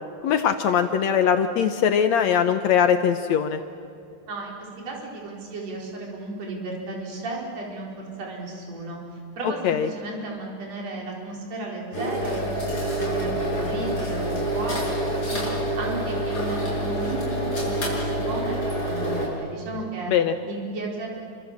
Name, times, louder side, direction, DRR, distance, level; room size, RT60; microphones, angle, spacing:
voice 1, 0.2-3.6 9.6-9.9 20.1-20.3, left 8 dB, 70° left, 8 dB, 2.0 m, -21 dB
voice 2, 4.3-12.7 13.0-18.6 18.8-20.1 20.5-21.1, right 2 dB, 55° right, -2 dB, 5.4 m, -34 dB
sound 1, 11.9-19.3, right 1 dB, 30° left, 6.9 m, -27 dB
29.5 x 25.0 x 7.4 m, 2.4 s
omnidirectional pair, 3.6 m